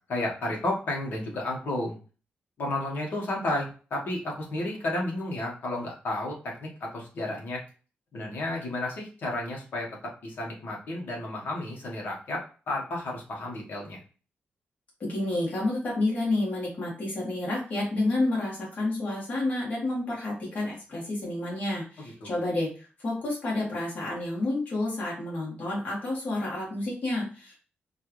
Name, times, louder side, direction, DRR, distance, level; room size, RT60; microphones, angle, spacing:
voice 1, 0.1-1.9 2.6-7.6 8.1-9.9 10.2-14.0 22.0-22.3, left 1 dB, 55° left, -2 dB, 1.3 m, -32 dB
voice 2, 15.0-22.7 23.0-27.6, left 2 dB, 40° left, -5 dB, 1.6 m, -29 dB
4.4 x 2.5 x 3.0 m, 0.37 s
wide cardioid pair, 175°, 4 cm